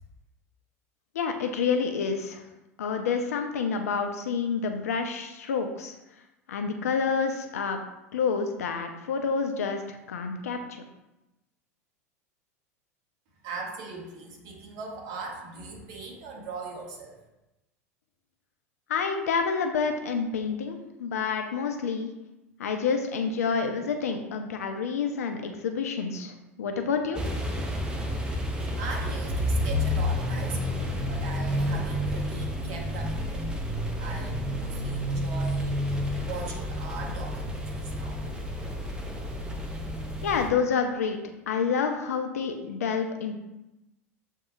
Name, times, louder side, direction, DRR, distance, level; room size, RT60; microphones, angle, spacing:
voice 1, 1.1-2.5 2.8-5.9 6.5-7.8 8.1-10.8 18.9-22.1 22.6-27.2 40.2-41.2 41.5-43.4, left 5 dB, 75° left, 5 dB, 0.5 m, -28 dB
voice 2, 13.4-17.2 28.7-33.5 34.0-38.2, right 4 dB, 50° right, 0 dB, 1.2 m, -40 dB
sound 1, 27.1-40.5, left 1 dB, 10° right, 0.8 m, -30 dB
7.4 x 2.7 x 2.4 m, 0.96 s
figure-of-eight pair, 80°, 8 cm